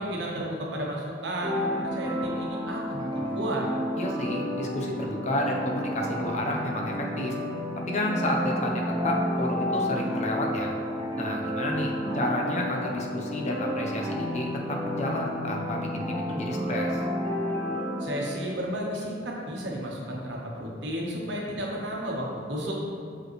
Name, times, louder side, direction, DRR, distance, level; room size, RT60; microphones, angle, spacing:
voice 1, 0.0-3.7 18.0-22.7, right 1 dB, 75° right, -2 dB, 1.1 m, -33 dB
sound 1, 1.4-18.7, equal, 25° right, 0.7 m, -31 dB
voice 2, 4.0-7.4 7.9-10.8 11.2-17.0, left 1 dB, 40° left, 0 dB, 0.7 m, -31 dB
6.2 x 5.2 x 3.1 m, 2.3 s
head